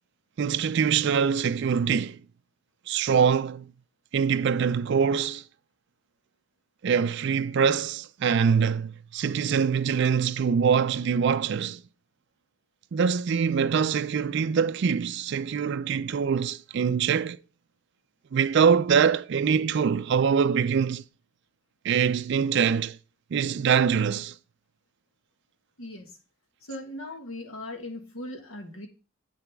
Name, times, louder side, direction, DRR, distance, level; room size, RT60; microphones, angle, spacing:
voice 1, 0.4-2.2 2.9-3.7 4.1-5.4 6.8-11.8 12.9-17.4 18.3-21.0 21.8-23.0 23.3-24.3, right 6 dB, 55° right, 0.3 m, -24 dB
voice 2, 25.8-26.2 26.6-28.9, left 1 dB, 75° left, 1.7 m, -39 dB
8.3 x 7.0 x 3.4 m
head